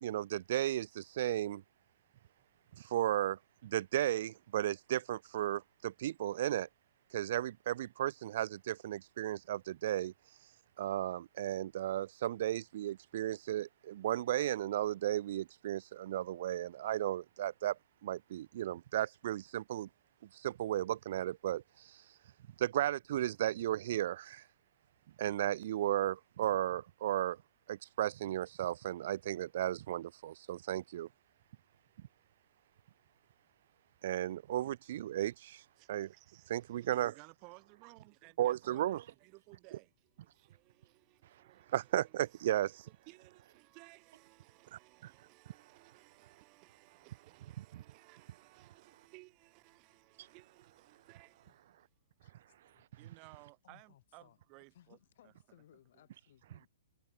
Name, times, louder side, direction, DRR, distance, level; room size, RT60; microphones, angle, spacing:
voice 1, 0.0-1.6 2.8-6.7 7.1-10.1 10.8-19.9 20.3-22.0 22.6-24.4 25.2-27.4 27.7-31.1 34.0-35.6 35.9-36.1 36.5-37.1 38.4-39.0 41.7-42.9 44.7-45.1 47.6-47.8 50.2-50.3, right 12 dB, 55° right, 0.4 m, -35 dB
voice 2, 35.8-51.9 53.0-55.0 55.2-55.3, right 30 dB, 35° right, 4.4 m, -60 dB
voice 3, 52.2-52.9 53.6-54.4 54.7-56.7, left 12 dB, 55° left, 7.5 m, -64 dB
hypercardioid pair, 120°, 0 cm